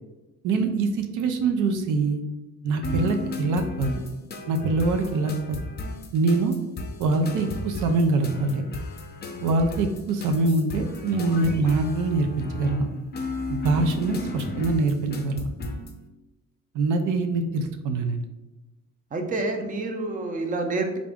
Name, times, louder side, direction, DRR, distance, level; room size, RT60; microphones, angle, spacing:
voice 1, 0.4-2.2 2.6-3.9 4.5-5.6 6.1-6.6 7.0-8.6 9.4-12.9 13.5-15.5 16.7-18.2, right 3 dB, 85° right, 5 dB, 0.5 m, -24 dB
sound 1, 2.8-16.0, left 3 dB, 35° left, 0.5 m, -35 dB
voice 2, 19.1-21.0, right 2 dB, 25° right, 4 dB, 0.5 m, -28 dB
3.4 x 2.5 x 3.5 m, 1.0 s
cardioid pair, 90°, 30 cm